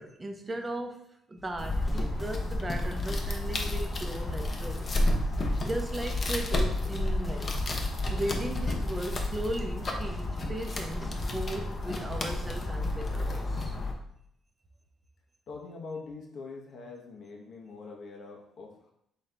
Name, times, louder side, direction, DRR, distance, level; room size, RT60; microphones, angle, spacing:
voice 1, 0.0-4.9 5.6-7.5 8.1-13.8, right 1 dB, 20° right, 4 dB, 0.7 m, -37 dB
sound 1, 1.4-11.6 12.0-12.8, left 2 dB, 10° left, 0.8 m, -40 dB
sound 2, 1.6-13.9, left 1 dB, 40° left, 0.7 m, -31 dB
voice 2, 15.5-18.9, left 4 dB, 65° left, 0 dB, 0.9 m, -43 dB
4.1 x 3.7 x 3.3 m, 0.74 s
cardioid pair, 90°, 0 cm